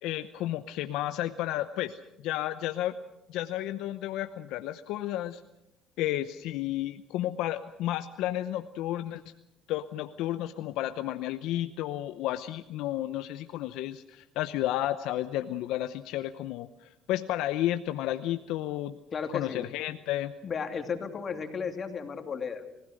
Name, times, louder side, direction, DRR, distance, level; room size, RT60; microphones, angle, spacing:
voice 1, 0.0-3.0 3.3-5.4 6.0-9.2 9.7-19.0 19.3-20.3, left 13 dB, 80° left, 9 dB, 0.8 m, -32 dB
voice 2, 19.1-19.7 20.4-22.6, left 6 dB, 40° left, 5 dB, 2.8 m, -34 dB
30.0 x 16.0 x 6.5 m, 0.88 s
cardioid pair, 95°, 0 cm